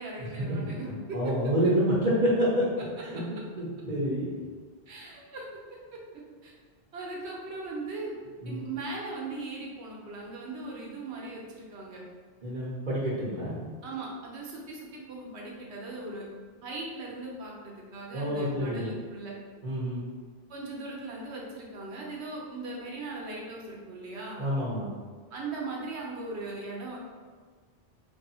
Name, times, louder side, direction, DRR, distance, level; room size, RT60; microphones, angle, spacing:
voice 1, 0.0-1.3 4.9-5.5 5.9-6.0 6.4-6.5 6.9-8.2 8.4-12.0 13.8-16.2 16.6-19.3 20.5-24.4 25.3-27.0, right 3 dB, 70° right, -2 dB, 1.1 m, -39 dB
voice 2, 0.9-2.6 3.0-4.2 8.4-8.7 12.4-13.6 18.1-18.9 19.6-20.0 24.4-24.9, equal, 45° right, -7 dB, 0.9 m, -28 dB
3.1 x 2.7 x 4.1 m, 1.5 s
omnidirectional pair, 1.2 m